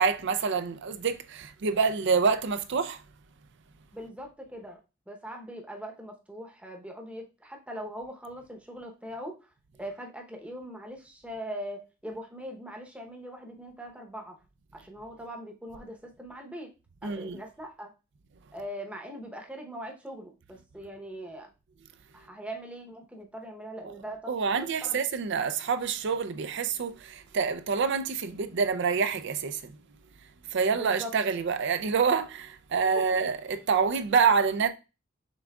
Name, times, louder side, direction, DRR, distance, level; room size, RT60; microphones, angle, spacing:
voice 1, 0.0-3.0 17.0-17.4 23.8-23.9 24.3-29.7 30.5-34.7, right 5 dB, 60° right, 0.5 m, -27 dB
voice 2, 3.9-4.8 5.1-9.3 9.8-14.4 14.7-16.7 17.0-17.9 18.5-21.5 22.1-25.0 30.7-31.1 32.9-33.2, equal, 5° right, 0.8 m, -41 dB
5.8 x 3.6 x 2.3 m
head